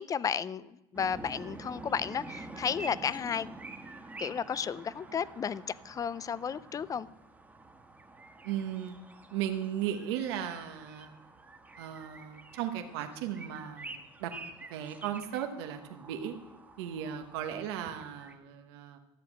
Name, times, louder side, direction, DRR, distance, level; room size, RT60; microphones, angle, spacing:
voice 1, 0.0-3.5 4.2-7.1, left 7 dB, 25° left, 0.4 m, -33 dB
sound 1, 0.9-18.3, right 2 dB, 10° right, 1.4 m, -48 dB
voice 2, 8.4-9.0 9.3-11.1 11.8-14.3 14.7-16.3 16.8-19.0, right 10 dB, 85° right, 1.1 m, -36 dB
13.5 x 7.9 x 5.9 m
supercardioid pair, 110°, 13 cm